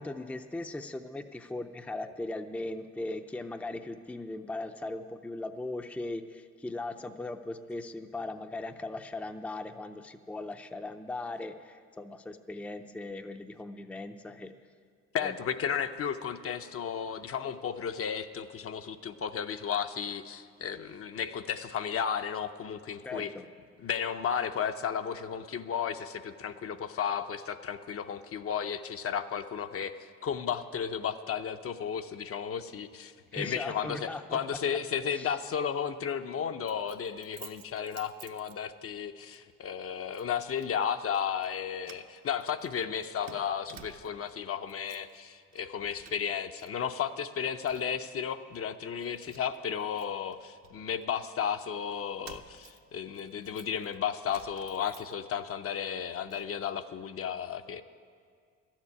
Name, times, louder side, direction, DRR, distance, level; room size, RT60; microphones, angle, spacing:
voice 1, 0.0-14.5 15.2-15.4 23.0-23.5 33.3-34.4 35.1-35.3, left 2 dB, 5° left, 8 dB, 0.5 m, -39 dB
voice 2, 15.1-23.3 23.8-30.0 30.2-57.8, left 7 dB, 50° left, 8 dB, 0.6 m, -34 dB
Keys jangling, 36.7-39.0 39.3-39.5 40.1-40.7 41.1-41.5 41.8-44.3 44.6-45.2 45.5-46.7 46.9-48.1 48.5-48.6 49.0-51.3 51.9-55.5 55.8-56.5, right 8 dB, 60° right, 0.8 m, -54 dB
12.5 x 7.3 x 9.6 m, 2.1 s
cardioid pair, 90°, 30 cm